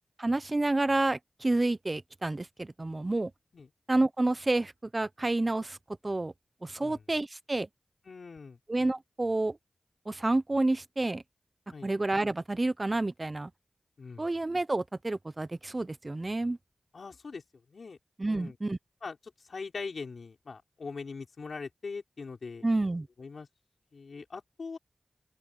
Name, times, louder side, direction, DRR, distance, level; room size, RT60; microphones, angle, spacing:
voice 1, 0.2-3.3 3.9-5.8 6.0-6.3 6.6-7.7 8.7-9.6 10.1-11.2 11.8-13.5 14.2-16.6 18.2-18.8 22.6-23.1, right 2 dB, 35° right, 0.8 m, -29 dB
voice 2, 8.1-8.6 11.7-11.9 14.0-14.3 16.9-17.4 17.7-18.0 18.3-18.6 19.0-22.6 23.2-23.5 23.9-24.8, left 4 dB, 75° left, 5.9 m, -41 dB
open air
cardioid pair, 45°, 0 cm